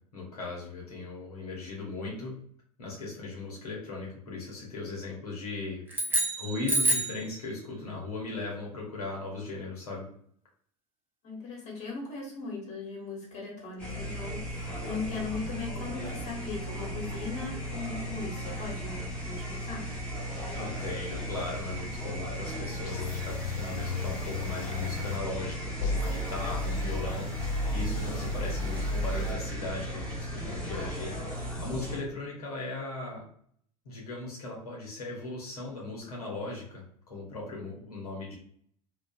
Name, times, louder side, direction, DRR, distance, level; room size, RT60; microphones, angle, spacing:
voice 1, 0.1-2.4 2.8-5.8 6.4-10.1 20.5-31.1 31.6-33.2 33.8-36.8 37.1-38.4, left 3 dB, 85° left, -3 dB, 0.8 m, -38 dB
sound 1, 5.9-7.3, right 2 dB, 10° right, 0.4 m, -27 dB
voice 2, 11.2-19.9, left 4 dB, 35° left, -2 dB, 1.2 m, -38 dB
sound 2, 13.8-32.0, equal, 5° left, 1.0 m, -36 dB
sound 3, 22.8-25.2 25.8-29.3, left 2 dB, 60° left, 0.4 m, -33 dB
2.4 x 2.2 x 2.3 m, 0.62 s
hypercardioid pair, 90°, 19 cm